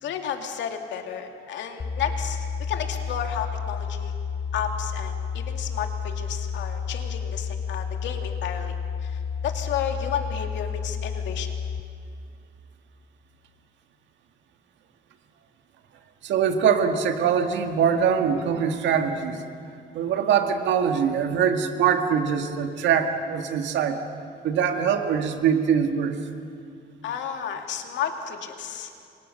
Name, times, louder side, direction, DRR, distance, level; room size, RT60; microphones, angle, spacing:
voice 1, 0.0-4.1 4.5-8.7 9.0-11.5 27.0-28.9, left 8 dB, 80° left, 4 dB, 2.6 m, -32 dB
sound 1, 1.8-11.8, left 6 dB, 30° left, 1.0 m, -31 dB
voice 2, 16.2-19.4 19.9-24.0 24.4-26.2, right 7 dB, 80° right, 5 dB, 2.0 m, -23 dB
28.5 x 24.5 x 6.6 m, 2.4 s
cardioid pair, 115°, 19 cm